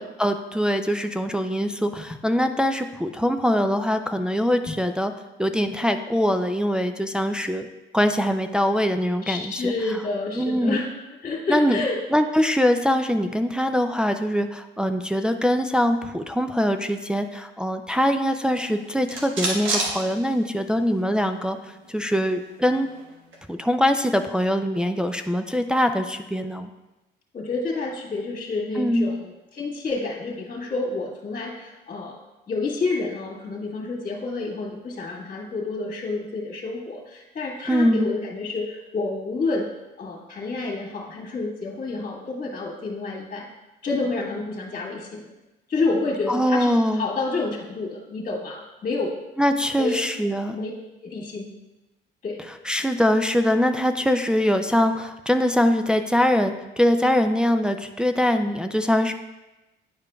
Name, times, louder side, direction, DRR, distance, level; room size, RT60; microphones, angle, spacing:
voice 1, 0.2-5.1 5.4-7.7 7.9-9.7 10.3-10.8 11.5-11.8 12.1-22.9 23.5-26.7 28.8-29.1 37.7-38.1 46.3-47.1 49.4-50.6 52.7-59.1, equal, 5° right, 6 dB, 0.3 m, -23 dB
voice 2, 9.2-10.9 11.2-12.0 27.3-32.2 32.5-39.7 40.0-43.5 43.8-45.3 45.7-49.1 49.8-50.0 50.5-50.7 51.0-51.5 52.2-52.4, left 3 dB, 45° left, -1 dB, 1.6 m, -29 dB
sound 1, 18.4-20.8 21.2-21.3 21.5-23.5, right 2 dB, 75° right, 1.3 m, -31 dB
9.5 x 4.9 x 2.3 m, 1.0 s
cardioid pair, 90°, 20 cm